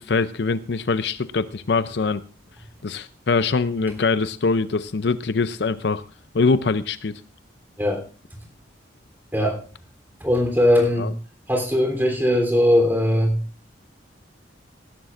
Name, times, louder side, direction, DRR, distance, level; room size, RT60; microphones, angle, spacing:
voice 1, 0.0-2.2 2.8-6.0 6.3-7.2 11.0-11.1, left 4 dB, 65° left, 13 dB, 0.5 m, -23 dB
voice 2, 10.2-11.1 11.5-13.4, left 1 dB, 10° right, 1 dB, 3.2 m, -19 dB
18.0 x 11.5 x 2.5 m, 0.36 s
head